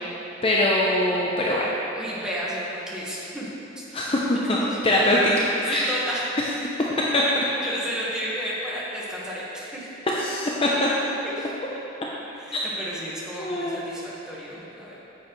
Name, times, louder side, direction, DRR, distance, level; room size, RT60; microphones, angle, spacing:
voice 1, 0.4-1.7 3.9-5.9 7.1-7.4 10.1-10.9 12.5-12.6 13.4-13.8, left 1 dB, 30° left, -4 dB, 0.6 m, -22 dB
voice 2, 1.9-3.5 3.8-4.7 5.6-6.4 7.6-9.9 11.2-11.5 12.4-15.0, equal, 5° right, -7 dB, 1.4 m, -33 dB
9.3 x 7.4 x 3.2 m, 3.0 s
head